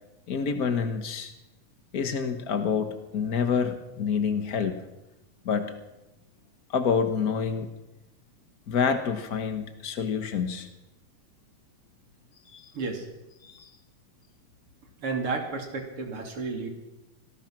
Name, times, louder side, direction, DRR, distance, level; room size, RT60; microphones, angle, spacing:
voice 1, 0.3-1.3 1.9-4.7 5.4-5.8 6.7-7.7 8.7-10.7 12.5-12.7 13.4-13.7, left 6 dB, 90° left, 8 dB, 0.8 m, -27 dB
voice 2, 12.7-13.1 15.0-16.7, right 4 dB, 40° right, 3 dB, 3.8 m, -32 dB
25.0 x 18.5 x 6.0 m, 0.97 s
omnidirectional pair, 3.8 m